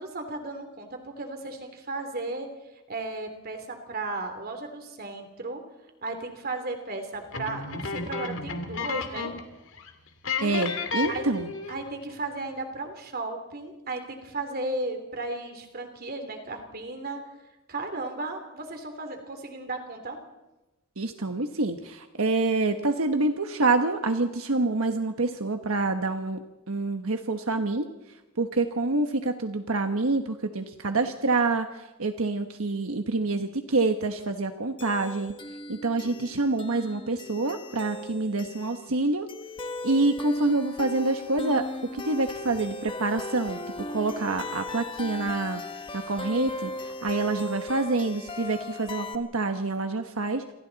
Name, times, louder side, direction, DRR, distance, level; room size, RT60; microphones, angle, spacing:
voice 1, 0.0-2.5 2.9-5.6 6.0-9.3 11.1-11.2 11.7-17.2 17.7-20.2, right 2 dB, 45° right, 5 dB, 3.1 m, -35 dB
sound 1, 7.3-9.5 9.8-9.9 10.2-11.9, left 4 dB, 60° left, 2.3 m, -32 dB
voice 2, 10.4-11.5 21.0-27.9 28.4-35.3 35.7-39.3 39.8-41.7 41.9-43.6 43.9-45.6 45.9-50.5, right 3 dB, 80° right, 6 dB, 1.3 m, -27 dB
sound 2, 34.8-49.2, left 1 dB, 25° left, 1.1 m, -38 dB
28.5 x 24.5 x 4.1 m, 1.0 s
head